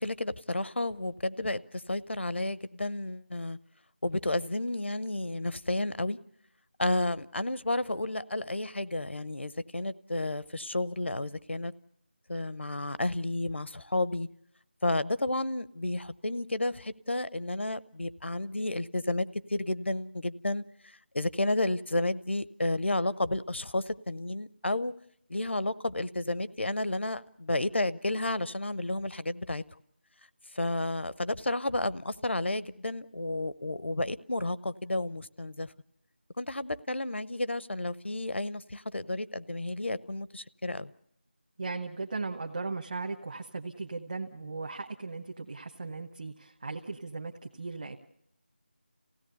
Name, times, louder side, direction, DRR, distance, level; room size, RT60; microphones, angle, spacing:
voice 1, 0.0-3.6 4.0-6.2 6.8-11.7 12.3-14.3 14.8-20.6 21.1-24.9 25.3-29.6 30.5-35.7 36.4-40.9, left 2 dB, 85° left, 0.8 m, -31 dB
voice 2, 41.6-48.0, right 3 dB, 45° right, 1.1 m, -37 dB
27.0 x 16.5 x 6.8 m
figure-of-eight pair, 170°, 6 cm